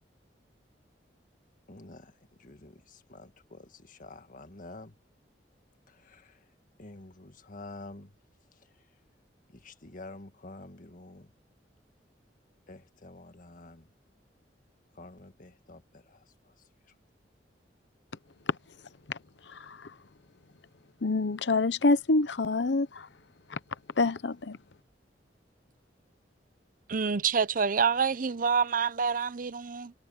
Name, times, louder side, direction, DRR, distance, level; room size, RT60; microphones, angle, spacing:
voice 1, 1.7-5.0 5.9-6.4 6.8-8.1 9.5-11.3 12.7-13.9 14.9-16.5, left 2 dB, 50° left, 1.7 m, -48 dB
voice 2, 19.5-19.9 21.0-23.1 23.5-23.6 24.0-24.6, left 3 dB, 80° left, 0.9 m, -27 dB
voice 3, 26.9-29.9, right 6 dB, 50° right, 0.7 m, -27 dB
head